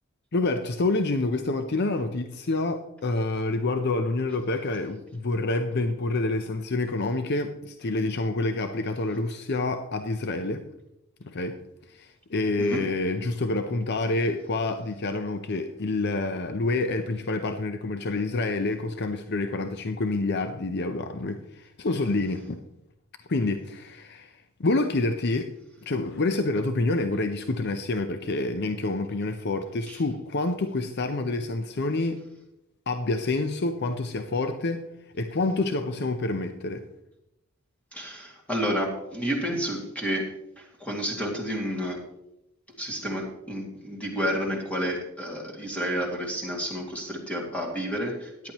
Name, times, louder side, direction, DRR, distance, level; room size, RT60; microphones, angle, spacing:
voice 1, 0.3-10.6 11.2-11.6 11.9-22.6 23.3-25.5 25.8-32.2 32.9-34.9 35.1-36.8, left 2 dB, 50° left, 0.7 m, -27 dB
voice 2, 37.9-40.3 40.6-42.0 42.8-48.3, equal, 5° left, 2.3 m, -30 dB
14.0 x 10.5 x 3.0 m
head